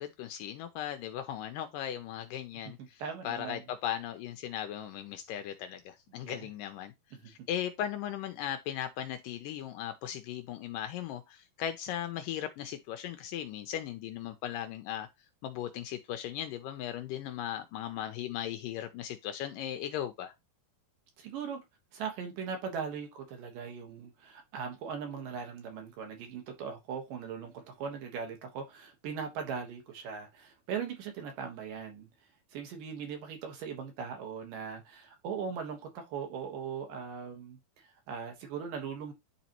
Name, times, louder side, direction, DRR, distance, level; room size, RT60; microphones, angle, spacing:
voice 1, 0.0-6.9 7.3-15.1 15.4-20.3, left 11 dB, 80° left, 2.1 m, -37 dB
voice 2, 3.0-3.6 6.2-6.5 7.1-7.3 21.2-21.6 21.9-32.1 32.5-39.1, right 6 dB, 70° right, 2.8 m, -39 dB
10.5 x 4.1 x 2.9 m
omnidirectional pair, 4.3 m